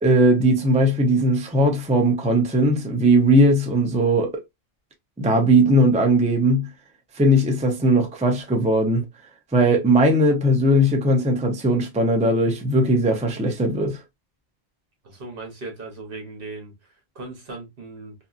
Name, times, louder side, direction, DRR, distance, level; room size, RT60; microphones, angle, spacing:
voice 1, 0.0-4.3 5.2-6.7 7.2-9.1 9.5-14.0, right 1 dB, 10° right, 0.4 m, -19 dB
voice 2, 15.0-18.1, right 3 dB, 65° right, 1.2 m, -38 dB
2.8 x 2.5 x 2.4 m
omnidirectional pair, 1.0 m